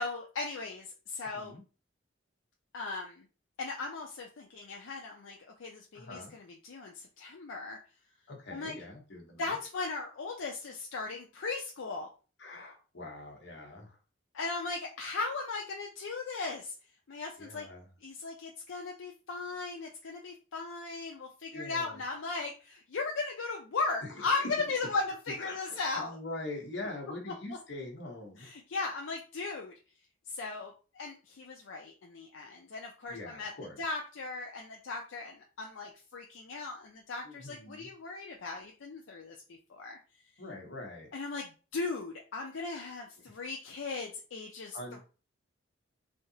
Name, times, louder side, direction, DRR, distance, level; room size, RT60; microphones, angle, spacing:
voice 1, 0.0-1.6 2.7-3.3 3.6-7.8 8.5-8.7 9.4-12.1 14.3-16.7 17.1-17.7 18.0-26.2 28.4-29.7 30.3-33.5 33.8-39.4 39.7-40.0 41.1-45.0, left 3 dB, 80° left, 1 dB, 0.5 m, -37 dB
voice 2, 5.9-6.3 8.3-9.6 12.4-14.0 17.4-17.8 21.5-22.0 24.0-24.1 24.4-24.5 25.4-28.5 33.1-33.8 37.2-37.9 40.4-41.1 44.7-45.0, left 2 dB, 65° left, 1 dB, 1.0 m, -43 dB
3.3 x 2.8 x 2.7 m, 0.36 s
head